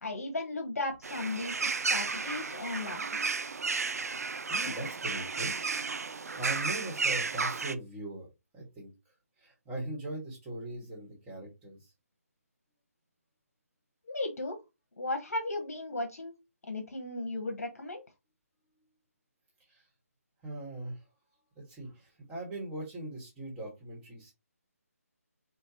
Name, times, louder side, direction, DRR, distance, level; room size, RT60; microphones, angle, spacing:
voice 1, 0.0-3.0 14.0-14.6 15.0-16.3 16.7-18.0, left 2 dB, 70° left, 4 dB, 1.0 m, -35 dB
sound 1, 1.0-7.7, right 4 dB, 75° right, 0.5 m, -33 dB
voice 2, 4.0-8.3 8.5-11.9 19.6-19.9 20.4-21.1 21.5-24.3, right 1 dB, 10° right, -4 dB, 1.5 m, -41 dB
4.5 x 2.5 x 2.8 m, 0.24 s
figure-of-eight pair, 155°, 8 cm